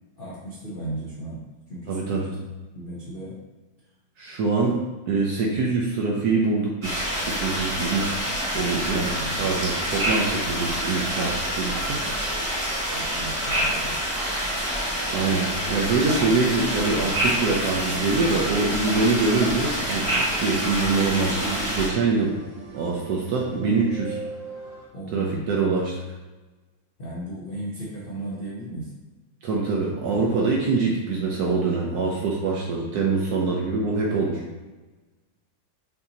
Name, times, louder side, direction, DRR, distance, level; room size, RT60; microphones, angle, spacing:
voice 1, 0.2-1.4 1.7-2.4 2.7-3.4 8.9-9.5 12.8-14.0 23.5-23.7 24.9-25.5 27.0-28.9 30.1-30.2, right 1 dB, 80° left, -6 dB, 0.5 m, -36 dB
voice 2, 1.9-2.3 4.2-4.8 5.1-8.2 8.5-9.1 9.4-12.0 15.1-22.3 22.7-24.2 25.1-26.0 29.4-34.4, right 4 dB, 70° right, -2 dB, 0.9 m, -24 dB
sound 1, 6.8-21.9, equal, 20° right, 1.0 m, -27 dB
sound 2, 16.7-24.9, right 3 dB, 85° right, 0.5 m, -41 dB
5.8 x 2.7 x 2.8 m, 1.2 s
omnidirectional pair, 2.2 m